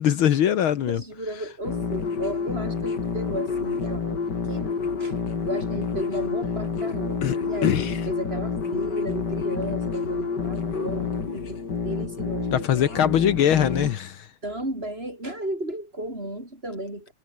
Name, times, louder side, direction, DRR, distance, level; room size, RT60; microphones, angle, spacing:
voice 1, 0.0-1.0 7.2-7.4 7.6-7.9 12.5-14.3, left 10 dB, 70° left, 2.0 m, -22 dB
voice 2, 0.9-4.7 5.0-5.2 5.4-11.6 11.8-13.0 14.4-17.1, right 1 dB, 25° right, 7.9 m, -34 dB
sound 1, 1.6-14.0, left 5 dB, 50° left, 3.3 m, -28 dB
omnidirectional pair, 2.4 m